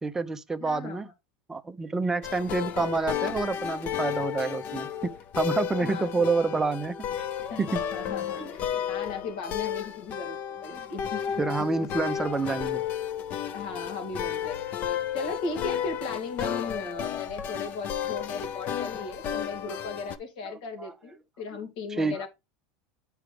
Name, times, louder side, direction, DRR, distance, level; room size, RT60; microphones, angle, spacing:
voice 1, 0.0-1.1 1.5-7.3 7.6-7.8 8.4-8.5 11.4-12.8 19.5-19.8 20.8-20.9 21.9-22.3, right 3 dB, 10° right, 0.6 m, -28 dB
voice 2, 0.6-1.1 5.8-6.3 7.5-11.4 13.5-14.7 15.1-22.3, left 4 dB, 70° left, 2.4 m, -37 dB
sound 1, 2.2-20.2, left 9 dB, 40° left, 0.7 m, -33 dB
9.0 x 4.9 x 3.4 m
supercardioid pair, 125°, 4 cm